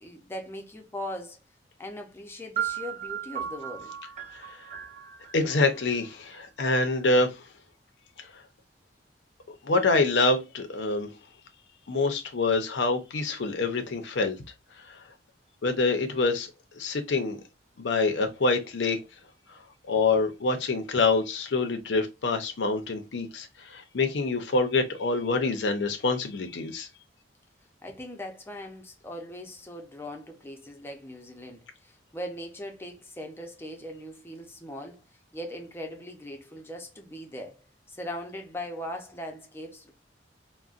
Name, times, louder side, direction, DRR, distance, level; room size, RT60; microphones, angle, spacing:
voice 1, 0.0-1.4 1.8-4.0 27.8-35.0 35.3-37.6 37.9-39.9, left 1 dB, 15° left, 0.5 m, -40 dB
sound 1, 2.6-6.4, right 9 dB, 40° right, 0.5 m, -36 dB
voice 2, 5.3-7.3 9.6-11.1 11.9-14.4 15.6-16.5 16.8-17.4 17.8-19.0 19.9-26.9, left 3 dB, 75° left, 0.6 m, -26 dB
3.8 x 2.1 x 2.4 m
head